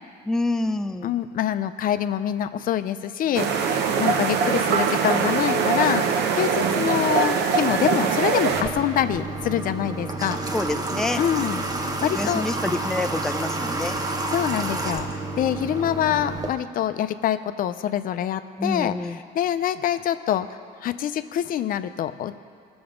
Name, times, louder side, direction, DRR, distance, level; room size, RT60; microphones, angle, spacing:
voice 1, 0.3-1.1 10.5-11.2 12.1-14.0 18.6-19.2, left 2 dB, 5° left, 8 dB, 0.4 m, -27 dB
voice 2, 1.0-10.4 11.2-12.4 14.0-22.4, left 10 dB, 55° left, 11 dB, 0.5 m, -26 dB
sound 1, 3.3-8.6, right 6 dB, 80° right, 0.9 m, -22 dB
Water / Water tap faucet, 8.5-16.5, right 2 dB, 20° right, 0.9 m, -29 dB
18.5 x 7.0 x 5.1 m, 2.2 s
cardioid pair, 110°, 17 cm